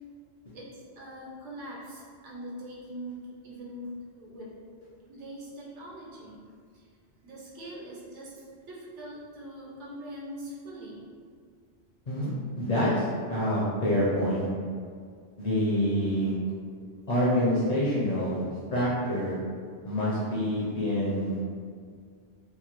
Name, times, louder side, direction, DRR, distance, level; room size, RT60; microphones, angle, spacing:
voice 1, 0.5-4.5 5.1-6.9 7.2-11.1, equal, 80° right, -5 dB, 1.0 m, -42 dB
voice 2, 12.6-14.5 15.4-16.3 17.1-18.4 18.7-19.4 19.8-21.5, equal, 50° left, -8 dB, 0.5 m, -26 dB
2.9 x 2.1 x 2.9 m, 2.1 s
omnidirectional pair, 1.2 m